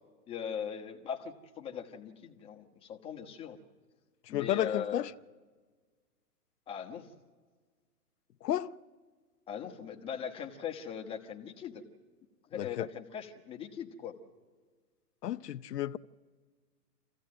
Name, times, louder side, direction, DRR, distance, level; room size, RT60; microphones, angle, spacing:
voice 1, 0.3-3.6 4.3-5.1 6.7-7.1 9.5-11.8 12.5-14.1, left 7 dB, 10° left, 1.1 m, -40 dB
voice 2, 4.3-5.1 8.4-8.7 12.5-12.9 15.2-16.0, left 12 dB, 75° left, 0.8 m, -32 dB
26.5 x 16.0 x 7.7 m
hypercardioid pair, 150°, 48 cm